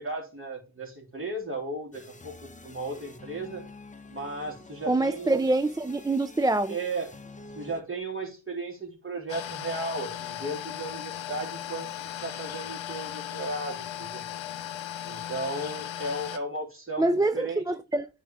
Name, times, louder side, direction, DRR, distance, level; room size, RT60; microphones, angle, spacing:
voice 1, 0.0-3.7 4.1-5.4 6.7-7.1 7.5-14.3 15.0-17.6, right 2 dB, 25° right, 3.6 m, -35 dB
sound 1, 1.9-7.8, left 2 dB, 15° left, 1.0 m, -48 dB
voice 2, 4.9-6.7 17.0-18.1, right 2 dB, 10° right, 0.3 m, -25 dB
sound 2, 9.3-16.4, left 11 dB, 75° left, 0.9 m, -37 dB
9.1 x 4.7 x 3.6 m
supercardioid pair, 50°, 47 cm